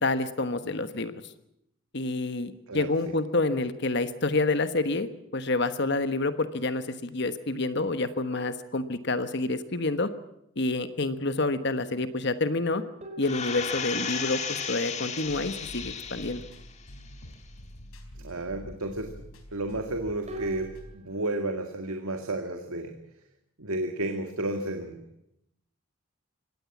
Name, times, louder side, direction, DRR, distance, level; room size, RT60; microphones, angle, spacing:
voice 1, 0.0-1.3 1.9-10.1 10.6-12.8 13.2-16.4, left 2 dB, 50° left, 10 dB, 1.3 m, -28 dB
sound 1, 13.0-14.2 20.3-21.3, equal, 30° right, 4.5 m, -42 dB
sound 2, 13.2-16.6 17.1-17.2, left 6 dB, 30° left, 1.7 m, -34 dB
sound 3, 15.2-20.9, equal, 75° left, 4.4 m, -47 dB
voice 2, 18.2-19.1 19.5-23.0 23.6-25.0, right 1 dB, 80° right, 5 dB, 2.1 m, -32 dB
24.5 x 18.0 x 7.3 m, 0.77 s
head